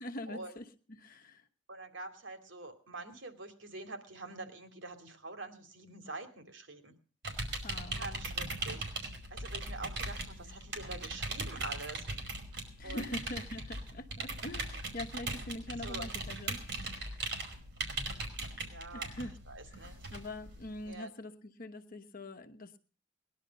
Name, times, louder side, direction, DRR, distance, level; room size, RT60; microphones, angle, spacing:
voice 1, 0.0-1.5 7.6-8.3 12.8-16.6 16.9-17.3 18.9-19.4 19.7-22.8, left 1 dB, 50° left, 5 dB, 1.1 m, -44 dB
voice 2, 1.7-6.9 7.9-8.9 9.3-12.1 12.8-13.0 15.8-16.0 18.7-19.1 19.5-20.0 20.9-21.1, right 2 dB, 85° right, 6 dB, 2.7 m, -45 dB
sound 1, 7.2-20.9, right 2 dB, 65° right, 5.0 m, -39 dB
20.5 x 11.5 x 5.3 m, 0.41 s
head